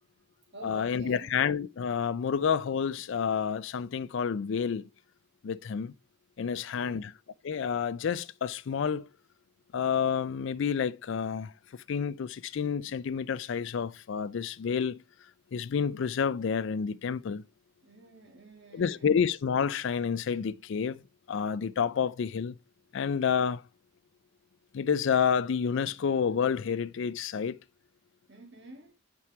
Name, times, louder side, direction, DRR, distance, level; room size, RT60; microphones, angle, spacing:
voice 1, 0.0-1.3 6.5-7.1 17.8-19.2 28.3-29.0, right 2 dB, 50° right, 1.8 m, -49 dB
voice 2, 0.6-4.9 5.4-5.9 6.4-7.1 7.4-9.1 9.7-15.0 15.5-17.4 18.7-21.0 21.3-22.5 22.9-23.6 24.7-27.6, left 7 dB, 55° left, 0.4 m, -29 dB
8.7 x 4.7 x 4.7 m
head